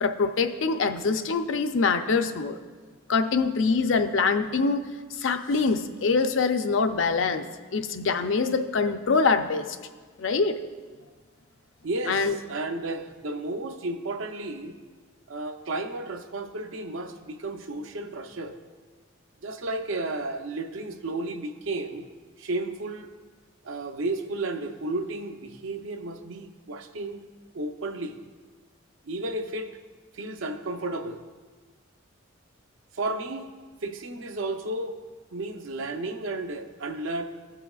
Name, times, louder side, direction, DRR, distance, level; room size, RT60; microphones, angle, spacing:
voice 1, 0.0-2.6 3.1-4.8 5.2-7.4 7.7-9.8 10.2-10.6 12.1-12.3, left 4 dB, 65° left, 7 dB, 0.5 m, -24 dB
voice 2, 11.8-14.8 15.3-18.5 19.4-22.1 22.4-23.1 23.6-27.2 27.5-28.2 29.0-29.7 30.1-31.2 32.9-33.5 33.8-35.0 35.3-37.2, right 2 dB, 70° right, 5 dB, 0.7 m, -33 dB
15.5 x 5.8 x 2.3 m, 1.4 s
head